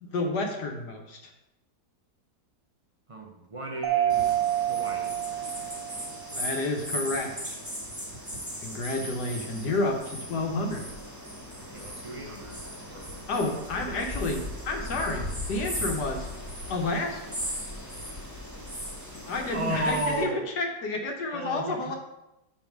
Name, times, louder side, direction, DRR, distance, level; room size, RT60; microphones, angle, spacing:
voice 1, 0.0-1.2 6.3-7.6 8.6-10.8 13.3-16.3 16.7-17.4 19.2-22.0, left 2 dB, 70° left, 2 dB, 1.4 m, -30 dB
voice 2, 3.1-5.2 11.5-12.6 12.9-13.8 19.5-20.5 21.3-22.0, right 2 dB, 50° right, 1 dB, 0.4 m, -35 dB
Mallet percussion, 3.8-6.4, right 12 dB, 80° right, 1.6 m, -28 dB
sound 1, 4.1-20.2, equal, 10° right, 1.6 m, -38 dB
5.2 x 5.2 x 5.9 m, 0.91 s
omnidirectional pair, 1.9 m